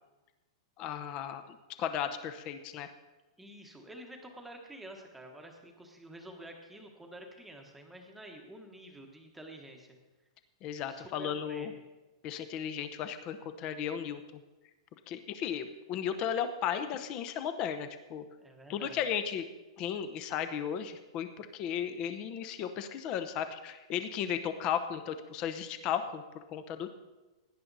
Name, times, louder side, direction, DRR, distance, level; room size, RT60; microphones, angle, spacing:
voice 1, 0.8-2.9 10.6-11.7 12.2-14.4 15.1-18.2 18.7-19.4 19.8-26.2 26.5-26.9, left 8 dB, 25° left, 10 dB, 0.8 m, -35 dB
voice 2, 3.4-10.0 10.8-11.7 18.4-19.0, right 1 dB, 5° right, 2 dB, 1.2 m, -49 dB
17.0 x 10.0 x 4.1 m, 1.1 s
supercardioid pair, 175°, 3 cm